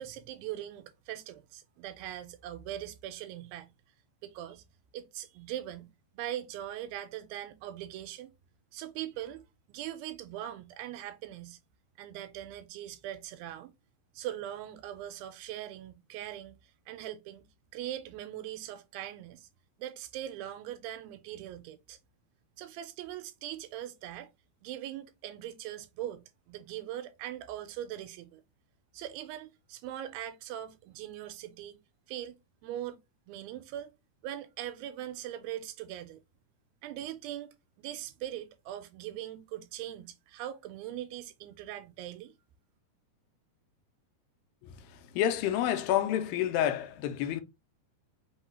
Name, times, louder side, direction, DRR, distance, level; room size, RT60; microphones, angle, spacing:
voice 1, 0.0-3.7 4.2-4.6 4.9-8.3 8.7-9.4 9.7-11.6 12.0-13.7 14.2-16.6 16.9-17.5 17.7-19.5 19.8-22.0 22.6-24.3 24.6-28.4 28.9-31.8 32.1-32.4 32.6-33.0 33.3-33.9 34.2-36.2 36.8-42.3, right 12 dB, 85° right, 2.4 m, -41 dB
voice 2, 44.6-47.4, left 11 dB, 80° left, 2.2 m, -29 dB
5.5 x 2.2 x 4.1 m
omnidirectional pair, 4.2 m